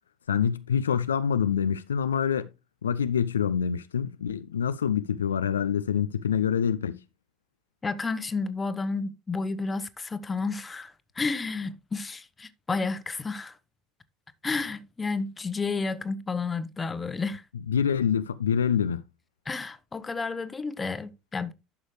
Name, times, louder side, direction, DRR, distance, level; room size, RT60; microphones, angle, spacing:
voice 1, 0.3-2.5 2.8-7.0 17.7-19.0, left 7 dB, 75° left, 0.4 m, -26 dB
voice 2, 7.8-13.6 14.4-17.4 19.4-21.5, left 4 dB, 20° left, 1.0 m, -31 dB
11.5 x 6.4 x 3.2 m
figure-of-eight pair, 65°, 0 cm